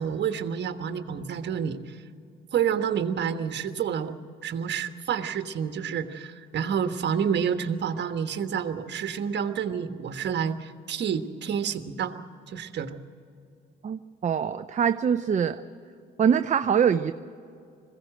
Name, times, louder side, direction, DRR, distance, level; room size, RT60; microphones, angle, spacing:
voice 1, 0.0-2.0 2.5-4.1 4.4-12.1 12.5-12.9, right 7 dB, 60° right, 8 dB, 1.4 m, -29 dB
voice 2, 13.8-15.6 16.2-17.1, right 7 dB, 40° right, 9 dB, 0.6 m, -23 dB
21.5 x 16.0 x 7.8 m, 2.4 s
cardioid pair, 90°, 20 cm